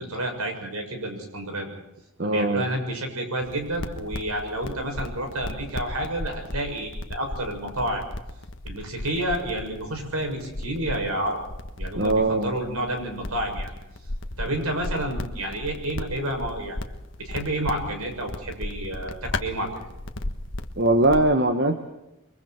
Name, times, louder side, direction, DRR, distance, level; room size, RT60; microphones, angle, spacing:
voice 1, 0.0-1.7 2.2-8.1 8.6-11.4 11.8-13.7 14.4-16.8 17.2-19.9, right 1 dB, 85° right, 3 dB, 7.2 m, -30 dB
voice 2, 2.2-2.7 12.0-12.5 20.8-21.9, right 2 dB, 50° right, 6 dB, 1.5 m, -21 dB
sound 1, 3.4-21.3, left 1 dB, 55° left, 1.5 m, -36 dB
29.5 x 23.0 x 4.6 m, 0.92 s
head